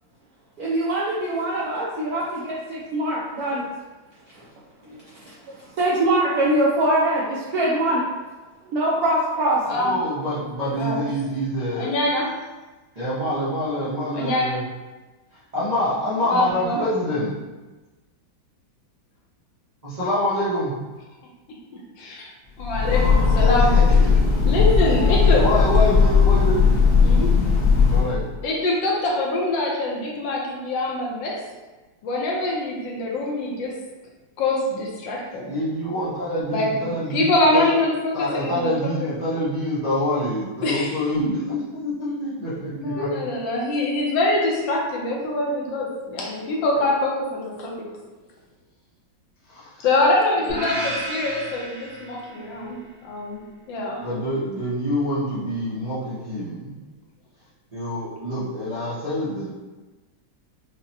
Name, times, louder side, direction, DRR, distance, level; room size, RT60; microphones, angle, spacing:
voice 1, 0.6-3.7 4.3-4.4 4.9-5.0 5.5-8.0 8.7-9.6, right 1 dB, 80° right, -5 dB, 0.8 m, -23 dB
voice 2, 9.7-11.9 12.9-14.6 15.3-17.3 19.8-20.7 23.6-24.2 25.4-26.8 27.9-28.2 35.4-37.7 38.1-43.1 49.5-49.8 50.4-50.7 54.0-56.8 57.7-59.5, left 1 dB, 60° right, -12 dB, 0.4 m, -26 dB
voice 3, 10.7-11.0 11.7-12.3 14.1-14.6 16.2-16.8 22.0-22.2 22.6-23.7 24.4-25.4 27.0-27.4 28.4-31.4 32.0-33.8 34.4-35.5 36.5-36.7 37.1-38.9 40.6-41.0 42.7-47.9 49.8-52.8 53.0-53.4 53.7-54.0, left 2 dB, 75° left, -2 dB, 1.4 m, -24 dB
Train, 22.6-28.3, left 5 dB, 60° left, 0.9 m, -17 dB
sound 1, 50.5-52.7, right 1 dB, 30° right, 0.7 m, -32 dB
5.0 x 2.1 x 2.8 m, 1.2 s
omnidirectional pair, 2.2 m